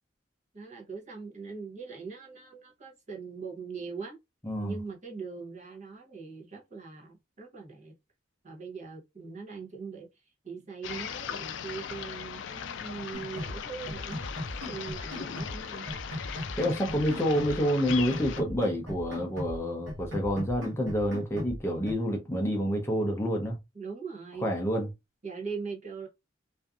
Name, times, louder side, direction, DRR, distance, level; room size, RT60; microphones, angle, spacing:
voice 1, 0.5-4.2 4.6-7.9 8.4-10.1 10.4-14.3 14.7-16.1 23.7-24.5 25.2-26.1, right 5 dB, 40° right, 0.8 m, -41 dB
voice 2, 4.4-4.8 16.6-23.6 24.4-24.9, equal, 15° left, 0.5 m, -28 dB
sound 1, 10.8-18.4, left 8 dB, 70° left, 0.3 m, -39 dB
sound 2, 13.1-13.6 13.9-15.6 15.9-17.6 17.9-19.6 19.9-21.6 21.9-22.0, left 1 dB, 70° right, 1.0 m, -39 dB
2.6 x 2.4 x 2.3 m
head